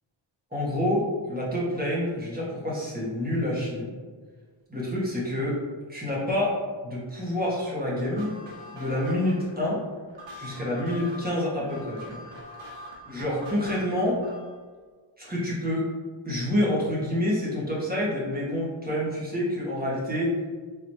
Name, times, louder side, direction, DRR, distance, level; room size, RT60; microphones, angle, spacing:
voice 1, 0.5-3.9 4.7-5.6 5.9-6.5 6.8-8.3 8.7-9.8 10.4-12.2 13.1-14.2 15.2-15.9 16.2-20.4, left 1 dB, 20° right, -7 dB, 1.5 m, -27 dB
sound 1, 8.0-14.6, equal, 70° right, 1.0 m, -44 dB
4.0 x 3.1 x 2.8 m, 1.5 s
wide cardioid pair, 75°, 48 cm